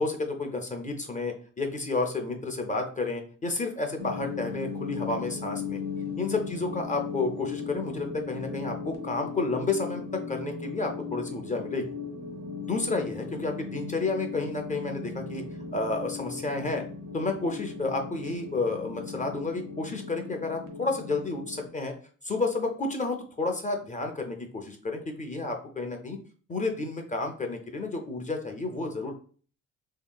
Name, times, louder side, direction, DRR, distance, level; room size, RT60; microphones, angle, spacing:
voice 1, 0.0-5.8 6.2-10.0 10.3-11.9 12.6-15.4 15.7-16.8 17.1-21.9 22.2-26.2 26.5-29.1, left 3 dB, 25° left, 3 dB, 0.5 m, -31 dB
sound 1, 4.0-21.7, left 5 dB, 90° right, 0.8 m, -37 dB
3.1 x 2.8 x 2.2 m, 0.43 s
cardioid pair, 90°, 30 cm